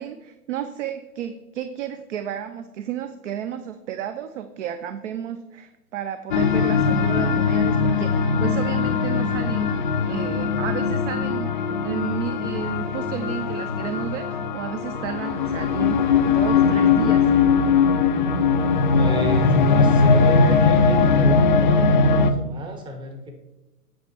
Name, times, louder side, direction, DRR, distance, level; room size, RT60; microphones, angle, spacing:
voice 1, 0.0-17.4, right 9 dB, 50° right, 9 dB, 0.6 m, -32 dB
sound 1, 6.3-22.3, left 5 dB, 35° left, 0.4 m, -20 dB
voice 2, 18.9-23.3, equal, 10° right, 4 dB, 0.8 m, -31 dB
8.5 x 5.5 x 4.5 m, 1.0 s
hypercardioid pair, 130°, 47 cm